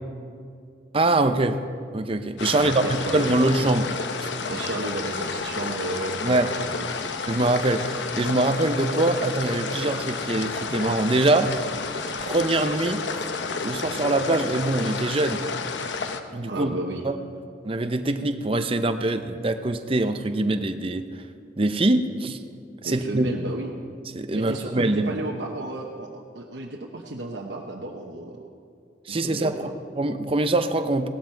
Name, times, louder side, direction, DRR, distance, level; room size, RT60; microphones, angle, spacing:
voice 1, 0.9-1.6 1.9-2.8 3.1-3.9 4.2-4.3 6.2-6.5 7.3-11.5 12.3-13.0 13.6-15.4 16.3-16.7 17.0-17.2 17.6-21.1 21.6-22.4 22.8-23.3 24.1-25.1 29.1-31.1, right 2 dB, 30° right, 8 dB, 0.7 m, -23 dB
sound 1, 2.4-16.2, left 4 dB, 75° left, 0.8 m, -31 dB
voice 2, 2.5-3.4 4.5-6.4 6.7-7.0 16.5-17.0 22.8-23.7 24.3-28.5 29.3-29.7, right 2 dB, 75° right, 0 dB, 1.1 m, -33 dB
17.0 x 13.0 x 4.6 m, 2.3 s
head